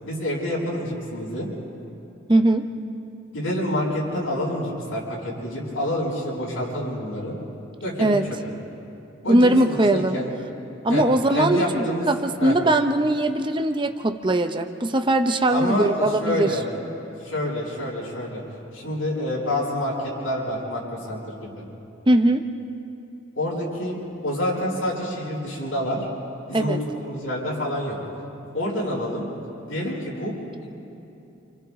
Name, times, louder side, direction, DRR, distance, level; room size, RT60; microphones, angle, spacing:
voice 1, 0.0-1.5 3.3-7.4 7.8-8.2 9.2-10.3 10.9-11.0 11.3-12.1 12.4-12.6 15.5-16.6 17.2-18.4 18.7-21.6 23.4-24.0 24.2-26.1 26.5-28.0 28.5-29.2 29.7-30.3, left 1 dB, 90° left, -5 dB, 6.9 m, -27 dB
voice 2, 2.3-2.7 8.0-8.2 9.3-10.2 10.8-16.5 22.1-22.4 26.5-26.8, right 1 dB, 25° right, 7 dB, 0.7 m, -20 dB
28.5 x 28.5 x 3.7 m, 2.8 s
head